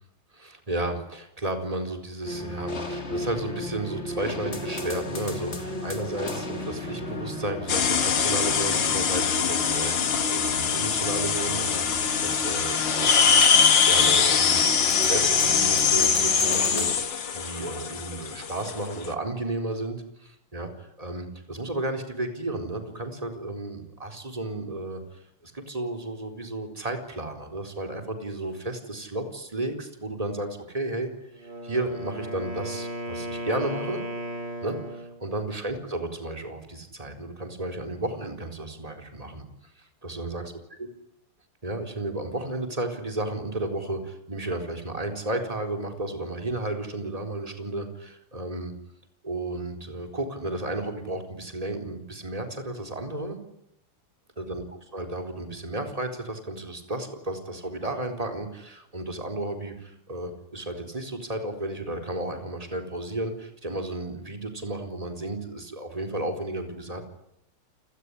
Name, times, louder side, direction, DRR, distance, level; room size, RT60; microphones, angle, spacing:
voice 1, 0.3-13.4 13.8-31.1 31.4-34.0 34.6-39.4 39.8-40.4 41.6-48.7 49.2-53.4 54.4-54.6 54.9-67.0, right 2 dB, 15° right, 4 dB, 4.3 m, -33 dB
sound 1, 2.2-17.0, left 1 dB, 30° left, 3.1 m, -34 dB
sound 2, 7.7-19.1, left 6 dB, 60° left, 2.3 m, -23 dB
Wind instrument woodwind instrument, 31.3-35.2, right 1 dB, 55° right, 6.2 m, -35 dB
29.0 x 18.5 x 10.0 m, 0.80 s
omnidirectional pair, 2.3 m